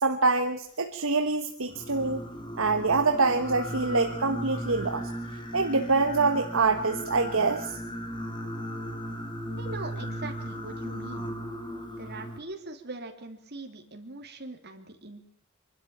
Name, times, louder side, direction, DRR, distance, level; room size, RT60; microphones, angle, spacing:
voice 1, 0.0-2.2 2.6-5.1 5.5-7.8, right 3 dB, 65° right, 6 dB, 1.3 m, -25 dB
Singing, 1.7-12.4, equal, 20° left, 2.6 m, -36 dB
voice 2, 9.6-11.3 12.0-15.2, right 2 dB, 50° right, 4 dB, 3.0 m, -41 dB
25.0 x 12.5 x 8.9 m, 0.66 s
head